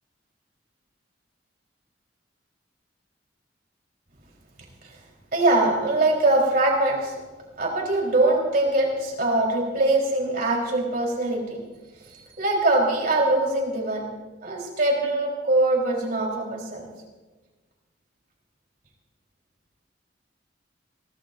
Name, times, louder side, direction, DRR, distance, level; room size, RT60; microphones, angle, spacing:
voice 1, 5.3-7.1 7.6-11.6 12.1-14.0 14.4-16.9, right 2 dB, 55° right, -1 dB, 3.9 m, -22 dB
23.0 x 16.5 x 2.6 m, 1.3 s
head